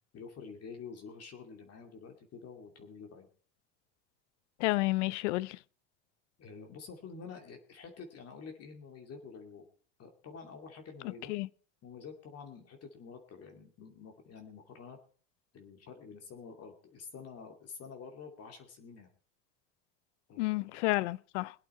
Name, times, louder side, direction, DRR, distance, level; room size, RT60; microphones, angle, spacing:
voice 1, 0.1-3.3 6.4-9.6 10.0-11.3 11.8-15.0 15.5-19.1 20.3-20.8, left 5 dB, 45° left, 2.6 m, -48 dB
voice 2, 4.6-5.6 11.3-11.5 20.4-21.5, left 20 dB, 90° left, 0.6 m, -30 dB
22.0 x 8.4 x 4.4 m
supercardioid pair, 105°, 34 cm